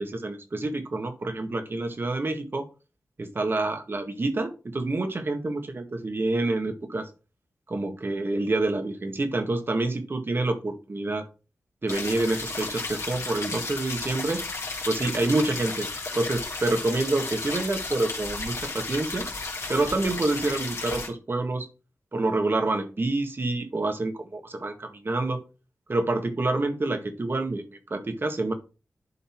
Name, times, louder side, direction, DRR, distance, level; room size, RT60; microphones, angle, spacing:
voice 1, 0.0-2.7 3.2-7.1 7.7-11.2 11.8-14.4 14.9-15.9 16.1-19.3 19.7-21.7 22.1-25.4 25.9-27.6 27.9-28.5, right 2 dB, 45° right, 6 dB, 1.9 m, -27 dB
sound 1, 11.9-21.1, left 3 dB, 60° left, 3.1 m, -33 dB
11.0 x 4.0 x 4.7 m, 0.32 s
wide cardioid pair, 95°, 5 cm